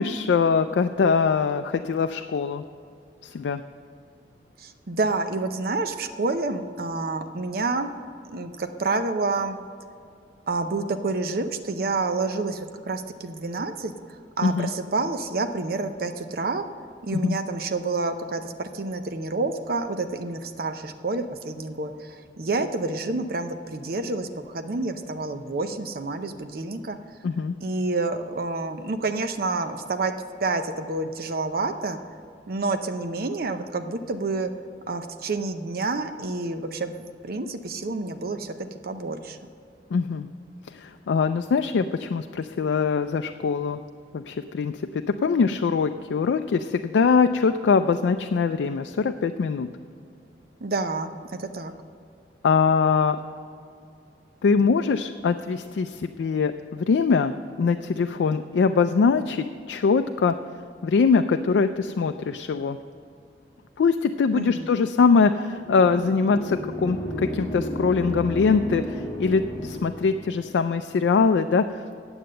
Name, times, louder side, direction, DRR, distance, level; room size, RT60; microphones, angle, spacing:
voice 1, 0.0-2.6 3.2-3.6 14.4-14.7 17.2-17.4 27.2-27.6 39.9-40.3 40.7-43.8 44.1-44.7 45.2-49.7 52.4-53.2 54.4-60.3 60.8-62.8 63.8-71.9, left 5 dB, 85° left, 7 dB, 0.4 m, -22 dB
voice 2, 4.6-7.9 8.2-9.6 10.5-16.6 17.0-27.0 27.6-30.1 30.4-32.0 32.5-34.5 34.9-39.4 50.6-51.7 64.3-64.7, right 3 dB, 55° right, 8 dB, 0.6 m, -28 dB
sound 1, 65.6-70.5, equal, 20° left, 1.5 m, -33 dB
9.4 x 7.9 x 7.6 m, 2.4 s
head